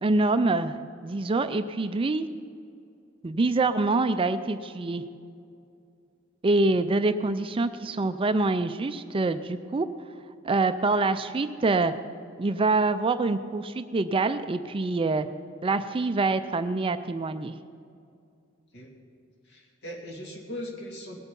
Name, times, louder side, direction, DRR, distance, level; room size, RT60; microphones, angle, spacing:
voice 1, 0.0-2.3 3.2-5.0 6.4-9.9 10.4-11.9 12.4-15.3 15.6-17.6, right 3 dB, 25° right, 11 dB, 0.4 m, -25 dB
voice 2, 19.5-21.2, equal, 60° left, 1 dB, 2.3 m, -39 dB
19.5 x 8.2 x 5.4 m, 2.4 s
head